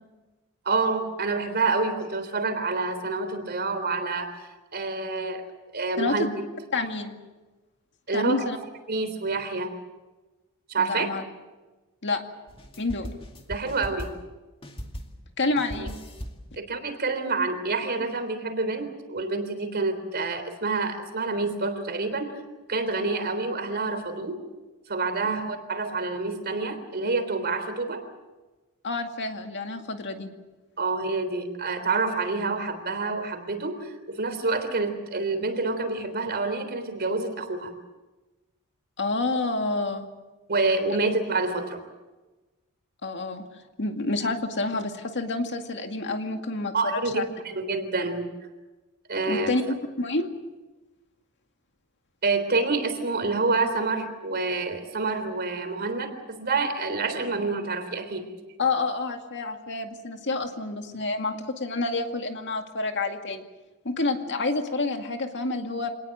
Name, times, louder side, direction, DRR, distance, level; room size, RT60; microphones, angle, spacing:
voice 1, 0.7-5.4 5.7-6.2 8.1-8.5 8.9-9.7 10.7-11.1 13.5-14.1 16.6-22.3 22.7-24.4 24.9-28.0 30.8-37.7 40.5-41.8 46.7-48.3 49.1-49.5 52.2-58.3, right 3 dB, 45° right, 8 dB, 3.5 m, -27 dB
voice 2, 6.0-6.3 6.7-7.1 8.1-8.6 10.8-11.2 12.0-12.2 12.8-13.1 15.4-16.0 25.2-25.4 28.8-30.3 39.0-40.1 43.0-43.4 43.8-47.2 49.3-49.6 50.0-50.3 58.6-63.4 63.8-65.9, left 3 dB, 55° left, 5 dB, 2.2 m, -28 dB
sound 1, 12.5-14.3 14.6-15.3 15.6-16.5, equal, 25° left, 2.3 m, -39 dB
25.5 x 19.5 x 7.8 m, 1.2 s
head